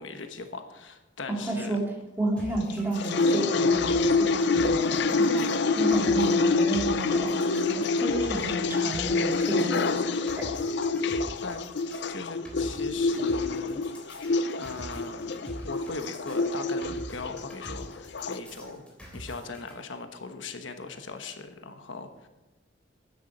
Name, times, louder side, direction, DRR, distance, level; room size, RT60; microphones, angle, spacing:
voice 1, 0.0-1.8 11.4-11.6 12.1-13.8 14.6-18.8 19.1-22.3, left 3 dB, 80° left, 7 dB, 1.2 m, -39 dB
voice 2, 1.3-1.8 2.2-7.7 8.0-9.9 10.4-10.5, right 2 dB, 10° right, 0 dB, 2.4 m, -31 dB
sound 1, 2.4-19.7, equal, 5° left, 3.5 m, -44 dB
sound 2, 2.7-18.4, left 3 dB, 60° left, 0.6 m, -26 dB
13.0 x 9.4 x 5.4 m, 1.1 s
head